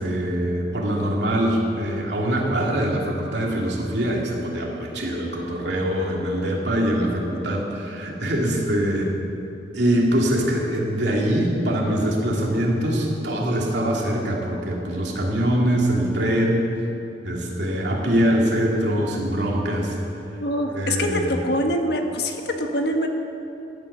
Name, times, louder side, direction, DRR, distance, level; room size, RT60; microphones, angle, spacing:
voice 1, 0.0-9.1 9.7-16.7 17.2-19.9 20.7-21.3, right 1 dB, 70° right, -2 dB, 2.8 m, -23 dB
voice 2, 20.4-23.1, equal, 65° left, 4 dB, 1.5 m, -24 dB
15.5 x 11.5 x 6.8 m, 2.9 s
head